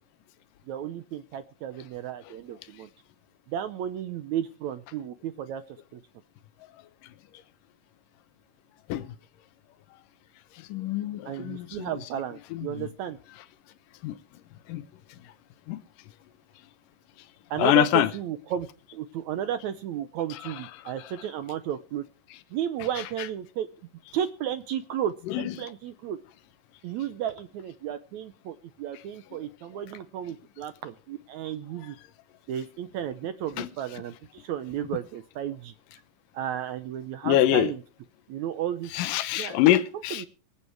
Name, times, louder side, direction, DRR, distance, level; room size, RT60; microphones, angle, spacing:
voice 1, 0.7-2.9 3.5-5.6 5.9-6.0 11.3-13.2 17.5-18.7 18.9-22.0 22.5-23.7 24.1-26.2 26.8-32.0 32.5-35.7 36.3-37.8 38.3-38.9 39.4-39.8 40.2-40.3, right 10 dB, 75° right, 1.9 m, -33 dB
voice 2, 10.5-12.0 12.5-12.9 14.0-14.2 14.7-14.8 15.2-15.3 15.7-15.8 17.6-18.1 20.3-21.1 23.2-23.3 25.3-25.6 29.3-29.4 31.8-31.9 33.6-33.7 37.2-37.7 38.9-40.2, left 13 dB, 85° left, 2.6 m, -26 dB
23.5 x 8.4 x 4.6 m
omnidirectional pair, 3.8 m